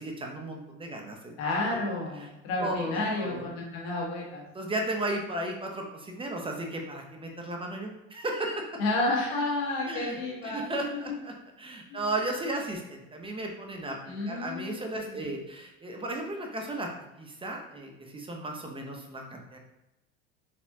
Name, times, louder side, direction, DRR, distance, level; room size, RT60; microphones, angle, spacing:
voice 1, 0.0-1.4 1.7-1.8 2.2-2.3 2.6-3.5 4.5-8.7 9.8-16.9 17.2-19.6, right 1 dB, 20° right, 1 dB, 0.7 m, -35 dB
voice 2, 1.4-4.4 8.8-11.1 11.9-12.0 14.1-15.2, left 2 dB, 90° left, -2 dB, 1.4 m, -31 dB
4.2 x 3.4 x 2.7 m, 0.95 s
supercardioid pair, 105°, 30 cm